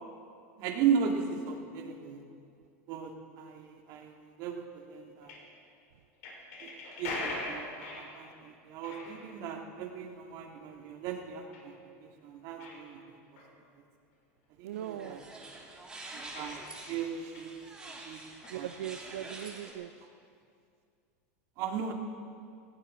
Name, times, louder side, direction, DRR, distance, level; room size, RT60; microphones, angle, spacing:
voice 1, 0.6-2.2 2.9-5.3 6.6-6.7 7.0-11.7 12.0-13.2 14.6-15.2 16.1-16.6 16.9-17.5 18.1-18.2 18.5-18.7 21.6-21.9, right 7 dB, 50° right, 2 dB, 2.3 m, -36 dB
sound 1, 5.2-5.4 6.2-8.5 8.8-10.3 11.5-11.7 12.2-12.3 12.6-12.8 13.4-13.5 16.3-17.4 18.3-18.5, left 2 dB, 70° left, 5.1 m, -41 dB
voice 2, 14.6-15.2 18.5-19.9, right 11 dB, 90° right, 8 dB, 0.6 m, -39 dB
sound 2, 14.7-19.7, right 2 dB, 10° right, 2.7 m, -47 dB
18.0 x 17.0 x 4.4 m, 2.3 s
supercardioid pair, 130°, 8 cm